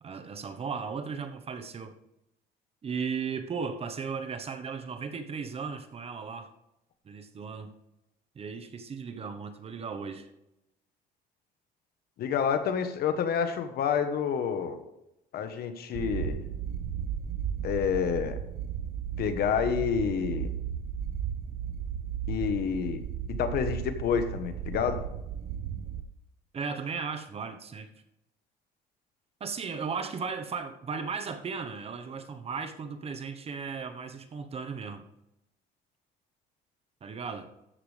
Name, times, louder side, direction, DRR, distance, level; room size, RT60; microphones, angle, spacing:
voice 1, 0.0-1.9 2.8-6.5 7.0-7.7 8.3-10.3 26.5-27.9 29.4-35.0 37.0-37.5, right 5 dB, 35° right, 7 dB, 1.1 m, -36 dB
voice 2, 12.2-14.8 15.3-16.4 17.6-18.4 19.2-20.5 22.3-23.0 23.3-25.0, left 7 dB, 65° left, 9 dB, 1.3 m, -28 dB
sound 1, 15.9-26.0, right 8 dB, 60° right, 0.8 m, -35 dB
13.5 x 8.2 x 3.4 m, 0.86 s
cardioid pair, 110°, 17 cm